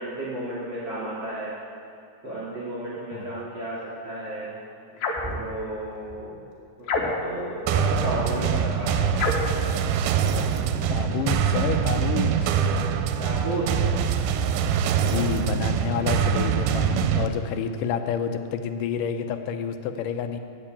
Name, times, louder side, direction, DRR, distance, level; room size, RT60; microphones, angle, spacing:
voice 1, 0.0-1.5 2.2-4.5 5.2-6.4 7.0-9.1 13.2-13.9, right 1 dB, 40° right, -8 dB, 2.8 m, -32 dB
sound 1, 5.0-5.4 6.8-7.4 9.1-9.6, left 3 dB, 65° left, 2.5 m, -27 dB
sound 2, 5.2-5.4 5.6-6.2 6.6-6.7 6.9-7.9 8.5-8.7 9.0-9.1 9.3-10.9 11.3-12.7, right 4 dB, 10° left, 1.7 m, -40 dB
sound 3, 7.7-17.3, right 7 dB, 80° right, 2.0 m, -24 dB
voice 2, 10.2-12.6 15.0-20.4, left 7 dB, 80° left, 8 dB, 2.3 m, -29 dB
15.5 x 5.3 x 8.7 m, 2.4 s
omnidirectional pair, 3.8 m